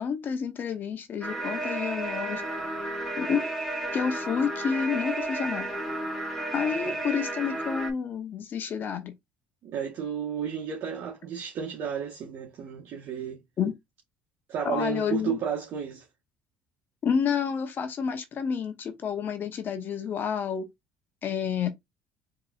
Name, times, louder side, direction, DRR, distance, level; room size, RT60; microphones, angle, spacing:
voice 1, 0.0-2.4 3.2-3.5 3.9-5.7 6.5-9.1 13.6-13.7 14.6-15.4 17.0-20.7 21.2-21.7, left 7 dB, 50° left, 0.8 m, -29 dB
sound 1, 1.2-7.9, right 1 dB, 5° left, 1.7 m, -32 dB
voice 2, 9.6-13.4 14.5-16.0, right 7 dB, 60° right, 1.1 m, -32 dB
4.8 x 3.0 x 2.4 m
supercardioid pair, 75°, 4 cm